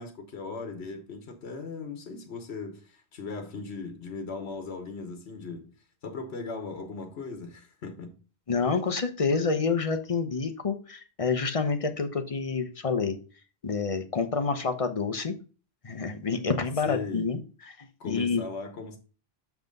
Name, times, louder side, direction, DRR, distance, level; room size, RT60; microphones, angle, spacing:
voice 1, 0.0-5.7 6.0-8.2 16.8-17.3 18.0-19.0, left 4 dB, 80° left, 1.3 m, -38 dB
voice 2, 8.5-13.2 13.6-15.3 15.8-17.4 17.7-18.4, left 4 dB, 35° left, 0.9 m, -28 dB
5.9 x 5.9 x 5.2 m
omnidirectional pair, 1.1 m